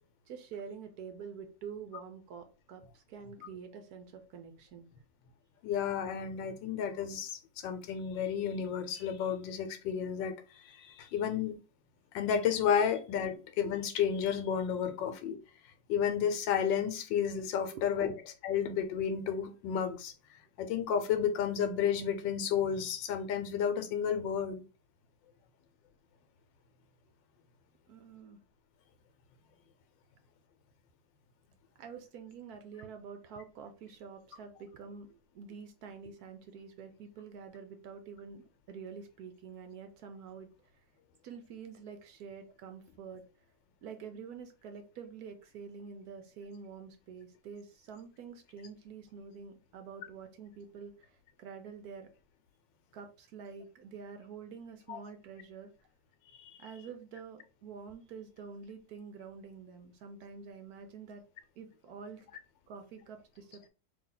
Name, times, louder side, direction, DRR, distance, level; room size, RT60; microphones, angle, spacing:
voice 1, 0.3-4.9 17.7-18.1 27.9-28.4 31.8-40.5 41.2-43.2 43.8-52.1 52.9-55.7 56.6-61.2 61.6-62.3 62.7-63.7, right 6 dB, 70° right, 7 dB, 1.0 m, -47 dB
voice 2, 5.6-10.3 10.6-11.5 12.1-15.4 15.9-18.1 18.4-20.1 20.6-24.6 54.9-55.0 56.5-56.6, left 8 dB, 90° left, 8 dB, 1.4 m, -32 dB
3.4 x 2.8 x 3.8 m, 0.33 s
omnidirectional pair, 2.0 m